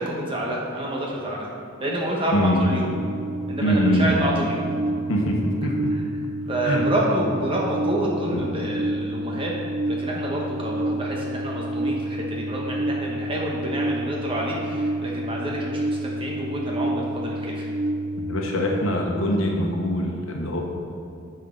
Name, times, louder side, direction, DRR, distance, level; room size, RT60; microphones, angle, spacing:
voice 1, 0.0-1.5 1.8-2.9 3.5-4.6 6.5-9.5 9.9-17.7, right 1 dB, 25° right, -3 dB, 1.2 m, -28 dB
sound 1, 2.9-18.8, right 1 dB, 70° right, 0.4 m, -29 dB
voice 2, 3.6-4.2 5.1-5.7 6.6-6.8 8.3-8.4 18.2-20.6, equal, 75° left, 0 dB, 1.1 m, -23 dB
9.8 x 5.6 x 3.9 m, 2.6 s
head